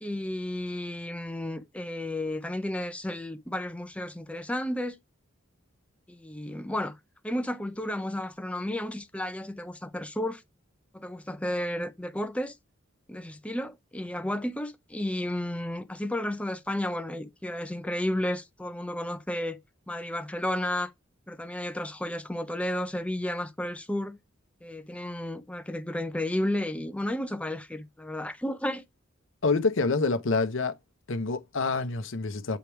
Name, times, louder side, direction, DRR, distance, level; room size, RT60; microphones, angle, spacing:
voice 1, 0.0-5.0 6.1-7.0 7.2-10.4 10.9-12.5 13.1-19.6 19.9-20.9 21.3-24.2 24.6-28.8, left 1 dB, 5° left, 0.7 m, -32 dB
voice 2, 29.4-30.8 31.1-32.6, left 3 dB, 65° left, 0.8 m, -27 dB
8.2 x 3.4 x 4.5 m
head